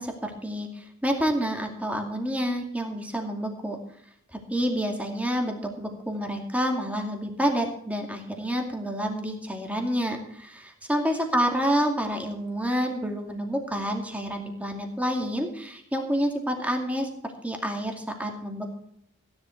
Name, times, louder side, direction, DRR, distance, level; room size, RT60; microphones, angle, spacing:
voice 1, 0.0-3.8 4.3-17.1 17.4-18.8, equal, 5° right, 2 dB, 2.4 m, -28 dB
16.0 x 10.5 x 4.6 m, 0.68 s
head